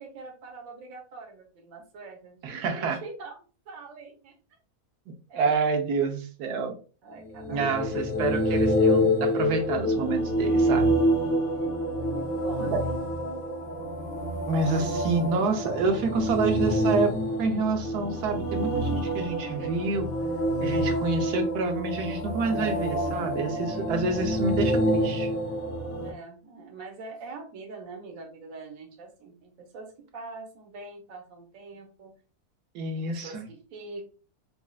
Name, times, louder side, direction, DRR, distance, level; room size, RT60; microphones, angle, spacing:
voice 1, 0.0-3.4 3.7-4.4 5.3-5.8 7.0-7.8 11.5-13.1 23.7-23.9 26.0-32.1 32.9-34.1, right 3 dB, 65° right, 1 dB, 1.3 m, -43 dB
voice 2, 2.4-3.0 5.3-6.8 7.5-11.0 12.6-12.8 14.5-20.1 20.6-25.3 32.7-33.4, right 4 dB, 90° right, 4 dB, 1.3 m, -28 dB
sound 1, 7.3-26.1, equal, 60° left, 1.5 m, -27 dB
5.3 x 2.3 x 2.4 m, 0.35 s
omnidirectional pair, 1.7 m